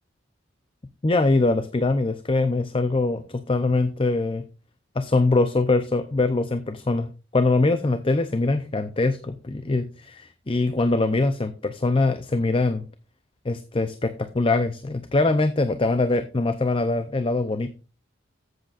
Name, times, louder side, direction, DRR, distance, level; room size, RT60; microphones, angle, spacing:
voice 1, 1.0-4.4 5.0-12.9 13.4-17.7, left 2 dB, 30° left, 10 dB, 0.6 m, -23 dB
13.5 x 7.8 x 2.5 m, 0.33 s
head